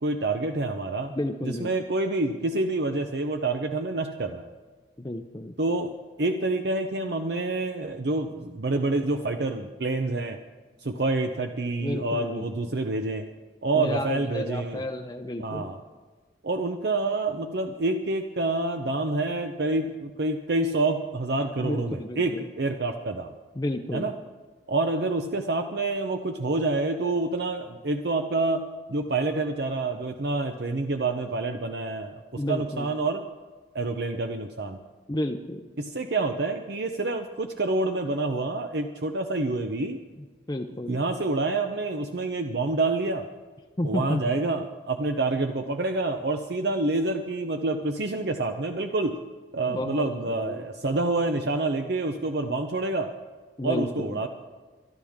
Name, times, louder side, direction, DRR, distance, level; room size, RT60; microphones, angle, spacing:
voice 1, 0.0-1.2 1.4-4.5 5.6-5.9 6.2-10.4 10.8-13.2 13.6-14.8 15.4-15.8 16.4-23.3 23.9-24.1 24.7-28.6 28.9-33.2 33.7-34.8 35.8-40.0 40.9-43.2 43.8-49.1 49.5-53.1 53.6-54.3, right 2 dB, 60° right, 6 dB, 0.7 m, -27 dB
voice 2, 1.1-1.7 5.0-5.5 11.8-12.7 13.7-15.7 21.6-22.5 23.6-24.1 32.4-32.9 35.1-35.6 40.5-41.0 43.8-44.3 49.7-50.6 53.6-54.2, left 1 dB, 20° left, 4 dB, 0.6 m, -31 dB
23.5 x 11.5 x 3.6 m, 1.4 s
head